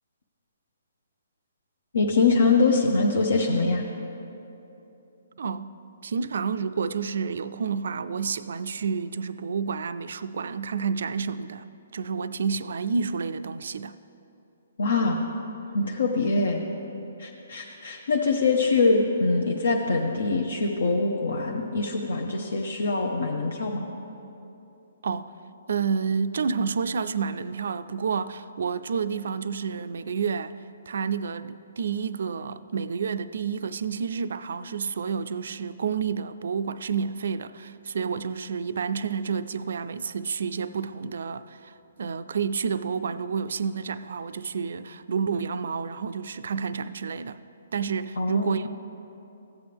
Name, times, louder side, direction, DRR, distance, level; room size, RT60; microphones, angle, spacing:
voice 1, 1.9-3.8 14.8-15.2 15.7-16.6 17.2-23.8 48.2-48.7, left 3 dB, 80° left, 0.8 m, -24 dB
voice 2, 5.4-5.7 6.0-14.0 25.0-25.3 25.7-30.6 30.9-47.4 47.7-48.7, right 6 dB, 70° right, 0.3 m, -29 dB
14.5 x 8.2 x 3.4 m
hypercardioid pair, 155°, 0 cm